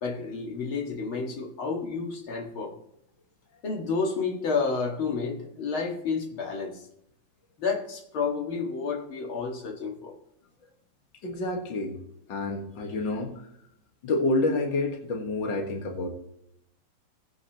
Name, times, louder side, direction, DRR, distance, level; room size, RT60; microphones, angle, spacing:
voice 1, 0.0-2.7 3.6-6.8 7.6-10.2, left 4 dB, 80° left, 1 dB, 2.6 m, -30 dB
voice 2, 11.2-11.9 12.3-13.3 14.0-16.1, left 2 dB, 65° left, 2 dB, 2.3 m, -28 dB
20.5 x 8.3 x 3.0 m, 0.75 s
omnidirectional pair, 2.2 m